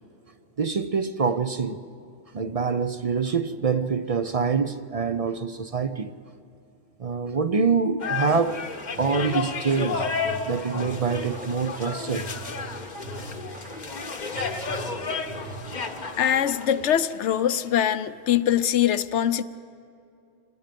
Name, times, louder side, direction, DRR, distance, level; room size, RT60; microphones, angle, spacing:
voice 1, 0.6-1.8 2.3-6.1 7.0-8.6 9.0-10.0 10.5-12.3, right 5 dB, 45° right, 0.5 m, -25 dB
sound 1, 8.0-17.7, left 5 dB, 40° left, 1.0 m, -32 dB
sound 2, 8.9-16.4, right 2 dB, 85° right, 2.6 m, -41 dB
voice 2, 16.2-19.4, left 10 dB, 75° left, 1.0 m, -23 dB
27.5 x 20.0 x 5.2 m
omnidirectional pair, 1.2 m